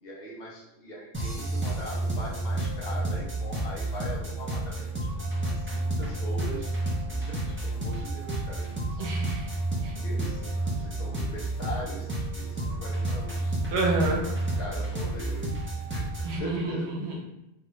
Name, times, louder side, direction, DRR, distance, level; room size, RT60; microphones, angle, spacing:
voice 1, 0.0-4.9 5.4-6.7 7.1-9.0 10.0-13.6 14.2-16.1 16.4-16.9, equal, 60° left, -4 dB, 1.0 m, -41 dB
sound 1, 1.1-16.4, right 2 dB, 20° right, 0.3 m, -30 dB
voice 2, 9.0-9.5 9.8-9.9 13.7-14.2 16.2-17.2, right 2 dB, 80° right, -2 dB, 1.0 m, -28 dB
3.1 x 2.3 x 3.0 m, 0.89 s
omnidirectional pair, 1.1 m